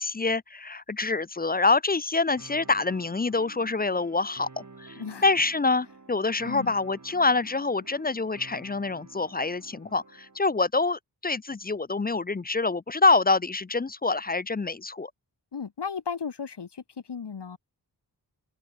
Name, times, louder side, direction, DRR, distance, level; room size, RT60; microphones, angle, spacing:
voice 1, 0.0-15.1, left 3 dB, 20° left, 0.5 m, -26 dB
sound 1, 2.4-10.4, right 3 dB, 45° right, 7.7 m, -50 dB
voice 2, 5.0-5.3 6.4-6.7 15.5-17.6, left 6 dB, 70° left, 3.4 m, -35 dB
wide cardioid pair, 75°, 42 cm